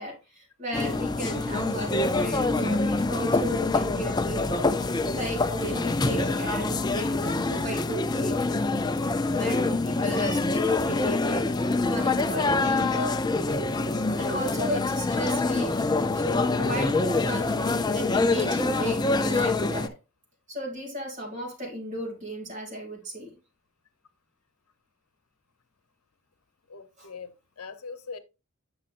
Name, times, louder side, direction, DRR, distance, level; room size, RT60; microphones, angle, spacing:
voice 1, 0.0-4.7 5.1-8.4 9.3-13.8 14.2-15.8 16.1-17.6 17.9-19.9 20.5-23.3 27.0-27.1, equal, 35° right, 2.9 m, -35 dB
sound 1, 0.7-19.9, left 3 dB, 20° left, 0.4 m, -25 dB
voice 2, 26.7-28.2, left 5 dB, 85° left, 0.8 m, -41 dB
8.7 x 6.5 x 2.5 m
head